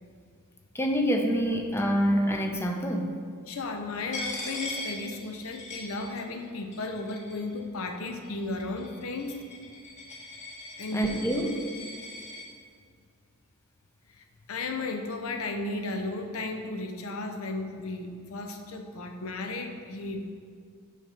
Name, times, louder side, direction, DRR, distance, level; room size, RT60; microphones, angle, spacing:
voice 1, 0.7-3.2 10.9-11.6, equal, 10° left, 3 dB, 0.6 m, -26 dB
voice 2, 3.5-9.4 10.8-11.2 14.1-20.3, left 2 dB, 75° left, 5 dB, 0.8 m, -34 dB
Coin (dropping), 4.1-6.4 6.7-7.5 8.2-12.5, left 2 dB, 35° left, 1.5 m, -40 dB
6.4 x 5.1 x 5.7 m, 2.1 s
head